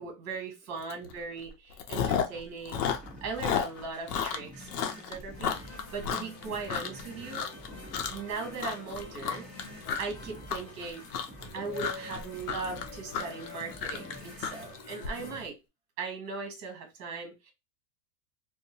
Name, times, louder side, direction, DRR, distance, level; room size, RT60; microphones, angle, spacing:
voice 1, 0.0-2.8 3.2-7.5 8.1-9.5 10.0-11.0 11.5-15.6 16.0-17.5, right 4 dB, 35° right, 1.1 m, -39 dB
Chewing mastication, 0.9-1.1 1.4-2.4 2.7-7.0 7.3-7.7 7.9-8.3 8.6-15.1, left 8 dB, 85° left, 0.7 m, -32 dB
sound 1, 2.7-14.7, equal, 5° left, 1.3 m, -49 dB
sound 2, 5.3-15.5, left 3 dB, 45° left, 1.1 m, -47 dB
2.7 x 2.1 x 2.8 m
supercardioid pair, 130°, 45 cm